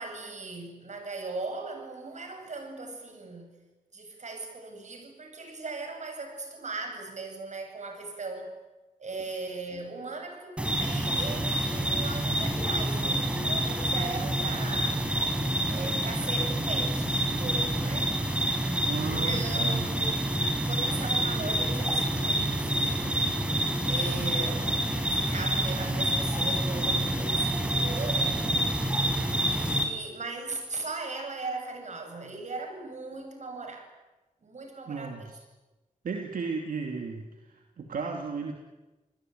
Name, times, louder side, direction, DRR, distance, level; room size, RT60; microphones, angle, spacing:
voice 1, 0.0-3.6 3.9-8.5 9.0-15.0 15.7-18.2 19.0-20.2 20.6-23.3 23.8-24.7 25.1-28.8 29.5-33.9 34.4-35.3, right 3 dB, 60° right, 4 dB, 7.9 m, -38 dB
sound 1, 10.6-29.8, right 1 dB, 10° right, 5.1 m, -27 dB
voice 2, 18.8-19.9 34.9-35.4 36.0-38.5, right 4 dB, 85° right, 3 dB, 2.9 m, -34 dB
29.5 x 21.0 x 9.4 m, 1.1 s
cardioid pair, 65°, 14 cm